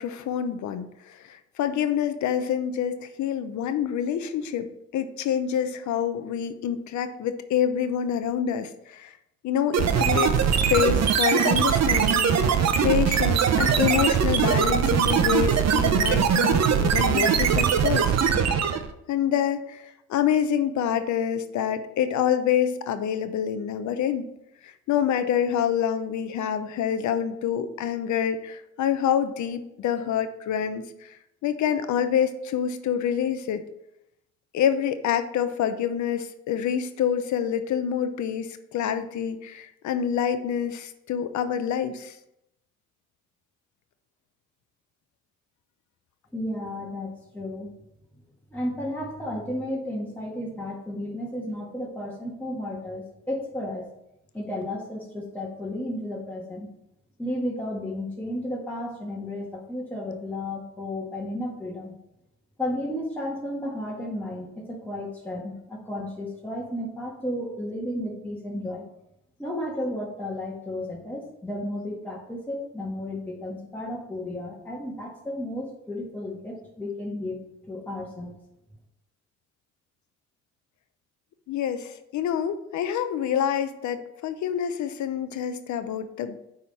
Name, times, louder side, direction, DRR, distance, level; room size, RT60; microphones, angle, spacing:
voice 1, 0.0-9.1 9.4-10.3 10.7-18.1 19.1-19.8 20.1-24.3 24.6-31.2 31.4-33.6 34.5-42.2 81.5-86.4, left 9 dB, 75° left, 10 dB, 0.7 m, -27 dB
sound 1, 9.7-18.9, right 7 dB, 60° right, 0.8 m, -21 dB
voice 2, 46.3-47.7 48.5-53.9 54.3-56.7 57.2-62.0 62.6-68.9 69.4-77.4 77.7-78.3, left 1 dB, 5° left, -4 dB, 1.7 m, -33 dB
9.5 x 3.7 x 4.2 m, 0.83 s
supercardioid pair, 70°, 29 cm